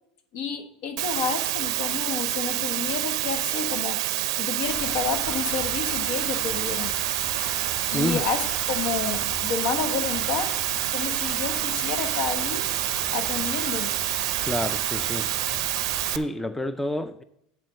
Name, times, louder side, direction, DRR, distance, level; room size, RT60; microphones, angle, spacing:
voice 1, 0.3-4.0 4.4-6.9 7.9-10.5 10.9-12.7 13.1-13.9, left 6 dB, 70° left, 1.2 m, -30 dB
Water, 1.0-16.2, right 16 dB, 80° right, 0.4 m, -27 dB
sound 1, 4.6-16.2, left 2 dB, 85° left, 3.0 m, -38 dB
voice 2, 14.4-15.3 16.1-17.2, left 1 dB, 5° left, 0.5 m, -28 dB
11.5 x 4.4 x 6.2 m
hypercardioid pair, 95°, 3 cm